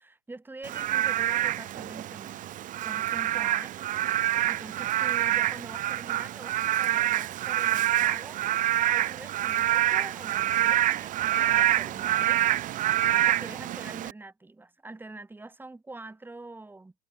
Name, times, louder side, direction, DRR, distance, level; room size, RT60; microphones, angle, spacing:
voice 1, 0.0-3.8 4.5-12.6 13.0-16.9, right 2 dB, 10° right, 5.9 m, -45 dB
Frog / Rain, 0.6-14.1, right 13 dB, 45° right, 1.2 m, -26 dB
supercardioid pair, 105°, 19 cm